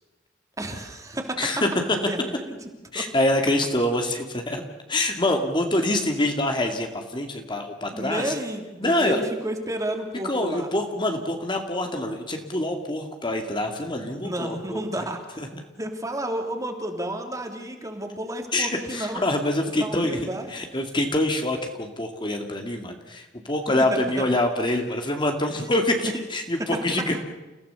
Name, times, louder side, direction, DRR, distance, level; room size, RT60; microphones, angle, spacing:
voice 1, 0.6-1.5 2.1-2.6 2.9-3.0 7.9-10.7 14.1-15.4 15.8-19.2 19.8-20.5 23.9-24.3, right 1 dB, 15° right, 4 dB, 3.2 m, -31 dB
voice 2, 1.4-1.7 2.9-4.6 4.9-8.3 8.8-9.2 10.2-14.8 15.4-15.6 18.5-27.2, left 1 dB, 25° left, 4 dB, 2.2 m, -25 dB
30.0 x 16.5 x 7.0 m, 1.2 s
head